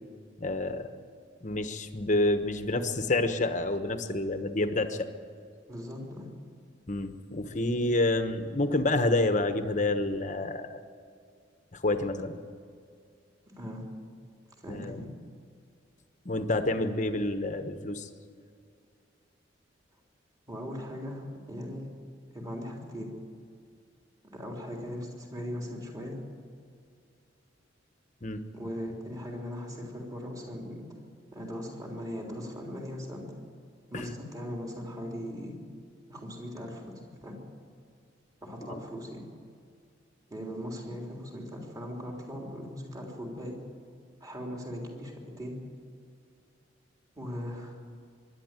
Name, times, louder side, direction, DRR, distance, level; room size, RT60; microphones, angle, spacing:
voice 1, 0.4-0.9 1.4-5.0 6.9-10.8 11.7-12.4 14.7-15.0 16.2-18.1 28.2-28.4 33.9-34.1 38.7-38.8, left 2 dB, 40° left, 8 dB, 1.2 m, -28 dB
voice 2, 5.7-6.3 13.5-13.9 14.6-15.1 20.5-21.9 22.3-23.1 24.2-26.2 28.5-30.9 31.3-33.4 33.9-35.6 36.1-36.9 37.2-37.4 38.4-39.2 40.3-43.6 44.2-45.6 47.2-47.8, equal, 20° right, -1 dB, 3.5 m, -39 dB
24.5 x 11.5 x 9.1 m, 2.3 s
head